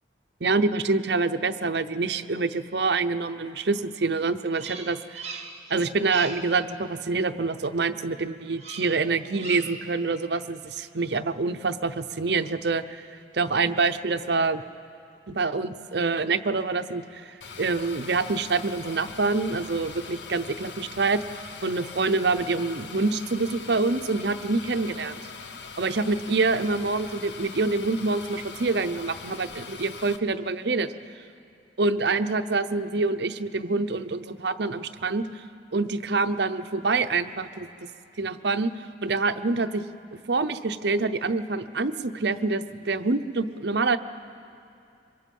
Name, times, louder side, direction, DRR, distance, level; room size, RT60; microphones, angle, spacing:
voice 1, 0.4-5.2 5.7-13.0 13.3-14.6 15.3-21.2 21.6-25.1 25.8-30.9 31.8-35.4 35.7-37.7 38.2-39.8 40.3-44.0, right 3 dB, 60° right, 9 dB, 0.7 m, -26 dB
Bird vocalization bird call bird song, 4.5-5.7 6.0-6.5 8.6-9.0 9.3-9.9, right 4 dB, 35° right, 1.8 m, -39 dB
sound 1, 17.4-30.2, left 5 dB, 65° left, 0.9 m, -41 dB
26.0 x 23.5 x 5.4 m, 2.5 s
head